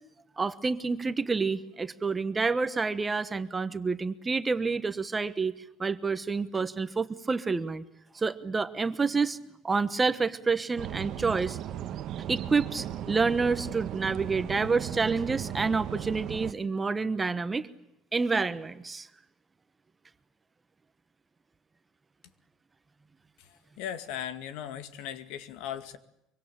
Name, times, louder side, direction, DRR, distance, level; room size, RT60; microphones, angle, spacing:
voice 1, 0.4-5.5 5.8-7.8 8.1-9.4 9.6-11.6 12.3-17.7 18.1-19.1, right 4 dB, 15° right, 11 dB, 1.1 m, -28 dB
sound 1, 10.8-16.5, right 11 dB, 45° right, 1.1 m, -36 dB
voice 2, 23.8-26.0, left 10 dB, 80° left, 11 dB, 2.2 m, -37 dB
24.5 x 24.5 x 8.8 m, 0.84 s
cardioid pair, 165°, 0 cm